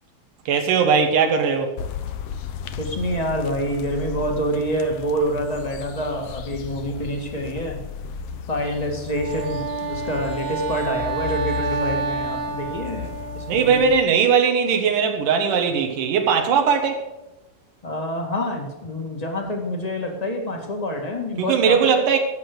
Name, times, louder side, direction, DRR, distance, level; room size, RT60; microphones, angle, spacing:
voice 1, 0.5-1.7 13.5-17.0 21.4-22.2, right 6 dB, 90° right, 2.9 m, -19 dB
sound 1, 1.8-14.0, left 8 dB, 80° left, 1.3 m, -35 dB
voice 2, 2.8-7.8 8.5-13.8 17.8-21.9, equal, 15° left, 1.5 m, -27 dB
Wind instrument woodwind instrument, 9.1-13.7, right 4 dB, 35° right, 2.1 m, -29 dB
12.0 x 8.3 x 6.4 m
omnidirectional pair, 3.7 m